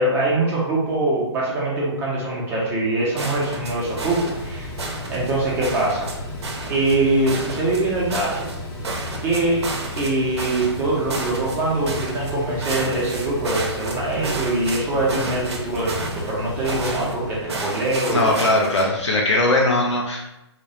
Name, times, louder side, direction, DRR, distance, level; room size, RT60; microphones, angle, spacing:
voice 1, 0.0-4.7 5.1-6.1 6.7-8.5 9.2-9.6 9.9-18.4, right 2 dB, 15° right, -5 dB, 0.5 m, -23 dB
Mechanical fan, 2.5-18.8, left 1 dB, 40° left, 0.7 m, -34 dB
sound 1, 3.2-4.4 4.8-5.3 5.6-6.1 6.4-7.0 7.3-8.6 8.8-10.1 10.4-10.8 11.1-11.6 11.9-12.3 12.6-14.8 15.1-16.3 16.6-17.1 17.5-18.8, right 3 dB, 70° right, 0.6 m, -31 dB
voice 2, 18.1-20.3, left 2 dB, 80° left, -1 dB, 0.4 m, -20 dB
2.2 x 2.1 x 2.7 m, 0.89 s
figure-of-eight pair, 130°, 15 cm